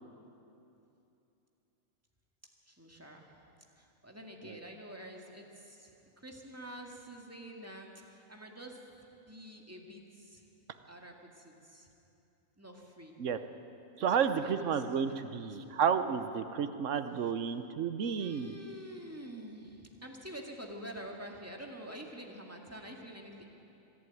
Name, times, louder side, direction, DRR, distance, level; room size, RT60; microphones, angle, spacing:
voice 1, 2.7-3.3 3.8-8.8 9.3-10.4 10.9-11.9 12.6-13.1 14.0-15.7 18.2-23.4, equal, 10° right, 0 dB, 2.0 m, -48 dB
voice 2, 14.0-18.5, right 7 dB, 70° right, 10 dB, 1.2 m, -31 dB
25.0 x 11.5 x 9.3 m, 2.8 s
omnidirectional pair, 1.3 m